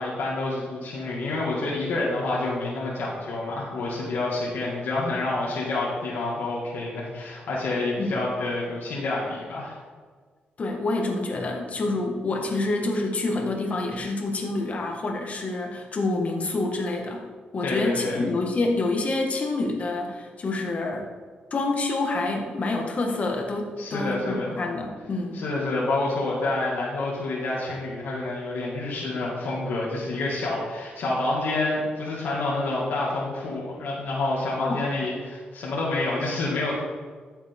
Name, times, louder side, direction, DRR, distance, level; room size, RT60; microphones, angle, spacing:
voice 1, 0.0-9.8 17.6-18.2 23.8-24.5 25.3-36.7, left 2 dB, 85° left, -6 dB, 2.2 m, -28 dB
voice 2, 10.6-17.2 17.5-21.1 21.5-25.4 34.6-34.9, left 2 dB, 45° left, 1 dB, 1.8 m, -27 dB
13.0 x 7.3 x 3.7 m, 1.5 s
cardioid pair, 110°, 3 cm